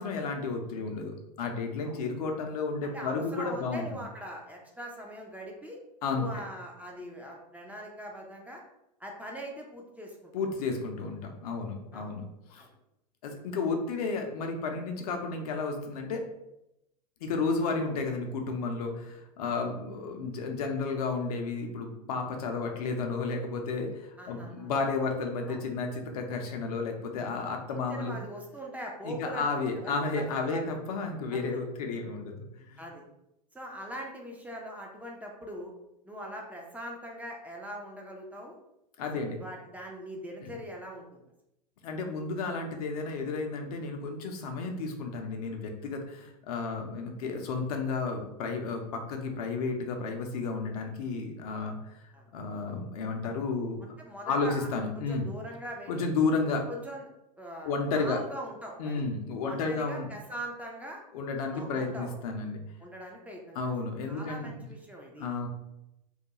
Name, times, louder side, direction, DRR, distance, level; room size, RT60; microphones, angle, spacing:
voice 1, 0.0-4.0 6.0-6.3 10.3-12.7 13.2-16.3 17.2-28.2 29.0-32.8 39.0-39.4 40.4-40.5 41.8-51.9 52.3-53.8 54.3-55.2 55.9-56.6 57.6-58.2 58.8-60.1 61.1-62.6 63.6-64.5 65.2-65.5, left 4 dB, 65° left, 3 dB, 0.5 m, -32 dB
voice 2, 2.8-5.8 6.1-8.6 9.0-10.3 11.9-12.1 12.6-12.7 24.2-24.7 25.5-25.6 27.7-30.6 31.3-31.4 32.8-33.0 33.5-35.7 36.1-38.6 39.1-41.2 52.1-52.2 53.8-54.7 55.0-56.1 56.5-57.1 57.4-59.0 59.4-61.0 61.5-62.2 62.8-63.7 64.1-65.3, equal, 5° right, -1 dB, 0.4 m, -42 dB
2.3 x 2.1 x 2.8 m, 0.86 s
hypercardioid pair, 85°, 21 cm